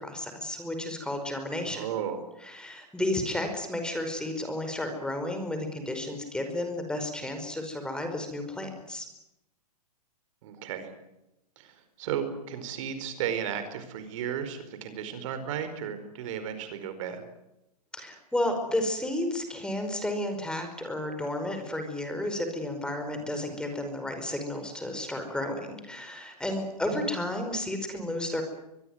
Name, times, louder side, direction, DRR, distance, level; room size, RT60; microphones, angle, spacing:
voice 1, 0.0-1.9 2.4-9.1 17.9-28.4, left 1 dB, 5° left, 6 dB, 5.2 m, -32 dB
voice 2, 1.6-2.3 10.4-10.9 11.6-17.2 26.9-27.0, right 8 dB, 55° right, 10 dB, 4.7 m, -34 dB
24.0 x 21.5 x 9.4 m, 0.88 s
hypercardioid pair, 125°, 20 cm